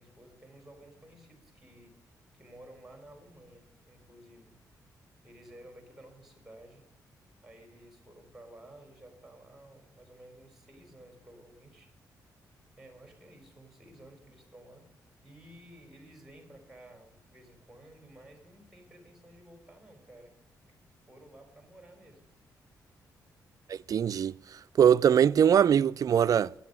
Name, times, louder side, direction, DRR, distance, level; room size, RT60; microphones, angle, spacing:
voice 1, 0.0-2.0 2.3-4.5 5.2-6.8 7.4-11.9 12.8-14.9 15.2-20.4 20.7-20.8 21.1-22.3, right 1 dB, 5° right, 4.0 m, -54 dB
voice 2, 23.7-26.5, right 8 dB, 55° right, 0.3 m, -23 dB
9.6 x 8.4 x 9.4 m
cardioid pair, 70°, 7 cm